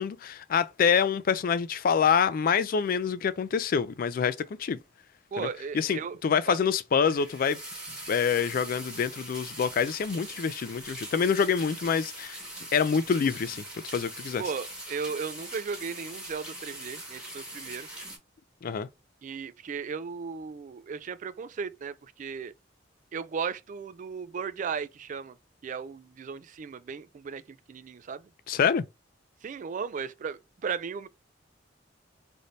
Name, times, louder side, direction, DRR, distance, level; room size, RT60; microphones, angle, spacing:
voice 1, 0.0-4.8 5.4-5.5 5.7-7.6 8.1-12.4 12.7-13.6 13.9-14.4 18.6-18.9 28.5-28.8, left 6 dB, 50° left, 0.3 m, -26 dB
voice 2, 5.3-6.2 6.5-6.6 14.4-17.9 19.2-22.5 23.1-25.3 25.6-28.2 29.4-31.1, right 6 dB, 40° right, 0.3 m, -36 dB
sound 1, 7.0-18.2, right 1 dB, 5° right, 1.3 m, -42 dB
3.3 x 2.7 x 3.9 m
head